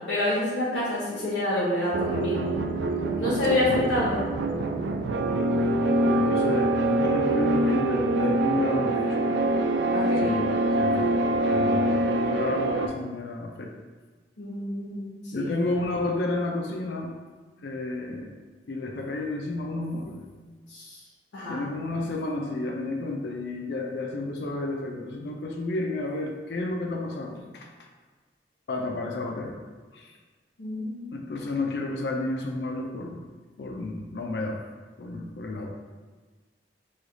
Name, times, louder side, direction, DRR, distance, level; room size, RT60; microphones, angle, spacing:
voice 1, 0.0-2.5 3.2-4.3 9.9-10.4 14.4-15.5 20.7-21.0 21.3-21.6 30.6-31.1, left 1 dB, 85° left, -8 dB, 0.9 m, -28 dB
sound 1, 1.9-12.9, right 1 dB, 70° right, 0.3 m, -25 dB
voice 2, 6.1-9.2 10.2-10.5 10.8-13.7 15.3-17.1 17.6-18.4 18.7-20.2 21.5-27.7 28.7-29.6 29.9-30.1 31.1-33.2 33.6-34.6 35.0-35.7, left 2 dB, 65° left, 1 dB, 0.4 m, -31 dB
3.2 x 2.3 x 3.8 m, 1.4 s
head